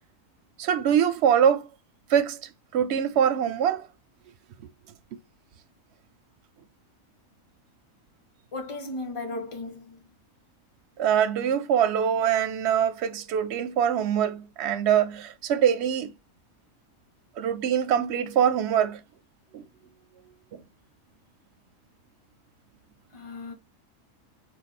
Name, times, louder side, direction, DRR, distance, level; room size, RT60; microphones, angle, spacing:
voice 1, 0.6-1.7 2.1-3.9 4.6-4.7 5.1-5.2 11.0-16.1 17.4-19.0 19.5-19.6 20.2-20.6, right 9 dB, 60° right, 0.8 m, -24 dB
voice 2, 8.5-10.0 23.1-23.5, left 2 dB, 25° left, 1.1 m, -35 dB
4.6 x 2.5 x 4.1 m
omnidirectional pair, 1.5 m